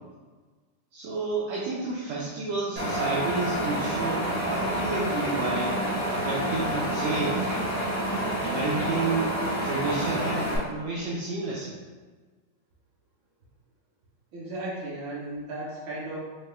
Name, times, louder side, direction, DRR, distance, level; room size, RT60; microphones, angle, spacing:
voice 1, 0.9-5.8 6.1-7.5 8.4-9.4 9.6-11.7, right 3 dB, 80° right, -6 dB, 1.5 m, -30 dB
Wind instrument woodwind instrument, 2.8-8.0, left 6 dB, 85° left, 2.0 m, -40 dB
Wind, 2.8-10.6, right 1 dB, 35° right, 1.2 m, -29 dB
sound 1, 3.3-9.2, equal, 65° left, 0.9 m, -46 dB
voice 2, 14.3-16.2, right 2 dB, 55° right, -7 dB, 1.5 m, -35 dB
5.1 x 2.1 x 3.3 m, 1.4 s
omnidirectional pair, 3.6 m